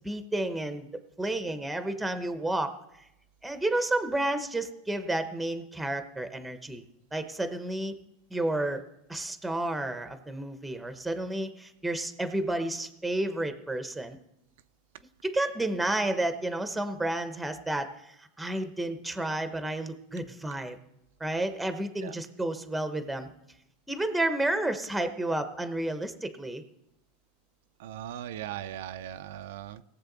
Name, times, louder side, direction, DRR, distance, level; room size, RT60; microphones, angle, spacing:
voice 1, 0.0-0.9 1.2-2.7 3.4-6.8 7.1-8.0 8.3-8.8 9.1-14.2 15.2-20.8 21.2-23.3 23.9-26.6, right 1 dB, 5° right, 9 dB, 1.0 m, -31 dB
voice 2, 27.8-29.8, right 11 dB, 80° right, 9 dB, 0.5 m, -39 dB
18.5 x 7.4 x 4.0 m, 0.83 s
supercardioid pair, 135°, 0 cm